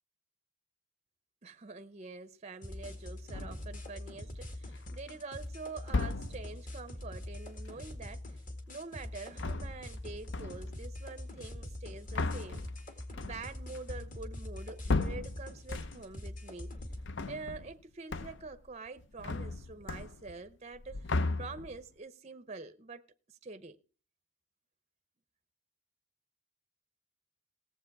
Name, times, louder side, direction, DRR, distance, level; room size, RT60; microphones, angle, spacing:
voice 1, 1.4-8.4 8.7-12.7 13.2-16.7 17.3-23.0 23.3-23.8, right 3 dB, 30° right, 0.6 m, -46 dB
sound 1, 2.6-17.0, left 1 dB, 40° left, 1.9 m, -44 dB
sound 2, 3.3-3.8 4.6-5.1 5.8-6.6 9.2-10.0 10.3-10.8 11.7-16.2 16.6-17.8 18.1-18.6 18.9-20.5 20.7-21.9, left 3 dB, 55° left, 0.6 m, -36 dB
18.0 x 7.6 x 4.6 m
head